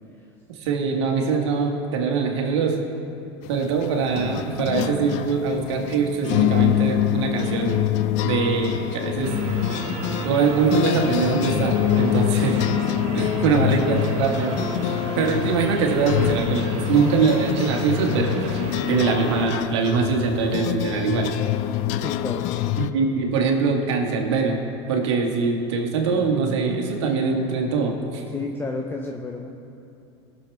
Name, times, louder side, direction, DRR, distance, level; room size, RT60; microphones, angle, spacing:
voice 1, 0.5-2.8 3.5-7.9 8.2-9.4 10.2-12.6 13.1-14.5 15.2-18.6 18.9-21.3 22.8-24.6 24.9-28.2, right 5 dB, 80° right, 1 dB, 1.8 m, -23 dB
sound 1, 3.4-22.9, left 13 dB, 60° left, 0.4 m, -25 dB
sound 2, 9.2-19.5, right 3 dB, 60° right, 2.8 m, -32 dB
voice 2, 22.0-22.5 28.3-29.5, left 3 dB, 15° left, 2 dB, 0.7 m, -31 dB
19.5 x 7.0 x 3.5 m, 2.8 s
hypercardioid pair, 95°, 14 cm